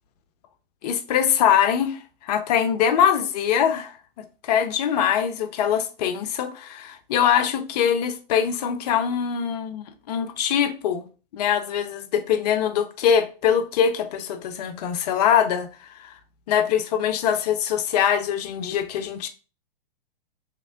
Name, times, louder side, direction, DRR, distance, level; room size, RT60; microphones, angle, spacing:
voice 1, 0.8-11.1 11.3-16.1 16.5-19.3, left 8 dB, 45° left, 0.5 m, -23 dB
3.1 x 2.9 x 2.6 m
figure-of-eight pair, 110°, 29 cm